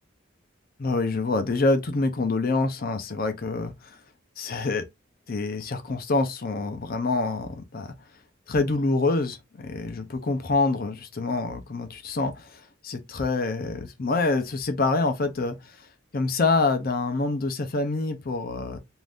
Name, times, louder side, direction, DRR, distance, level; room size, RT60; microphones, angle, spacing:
voice 1, 0.8-4.0 4.4-4.8 5.3-7.9 8.5-15.9 16.1-18.8, left 3 dB, 45° left, 0.5 m, -26 dB
2.6 x 2.5 x 3.3 m
head